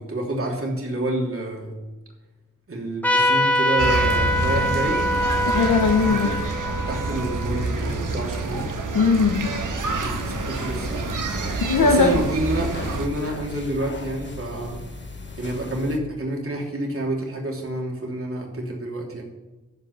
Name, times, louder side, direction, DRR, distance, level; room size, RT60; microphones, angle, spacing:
voice 1, 0.0-1.8 2.7-5.0 5.9-6.3 6.9-8.7 9.4-11.2 11.5-14.8 15.4-19.2, right 1 dB, 45° right, -1 dB, 3.2 m, -29 dB
Trumpet, 3.0-8.1, equal, 5° left, 1.6 m, -24 dB
sound 1, 3.8-13.1, right 3 dB, 75° right, 1.6 m, -27 dB
voice 2, 5.5-6.3 8.9-9.5 11.6-12.2, left 4 dB, 75° left, 3 dB, 1.1 m, -19 dB
sound 2, 9.8-16.0, left 3 dB, 35° left, 1.7 m, -38 dB
14.0 x 5.2 x 6.8 m, 1.1 s
wide cardioid pair, 100°, 32 cm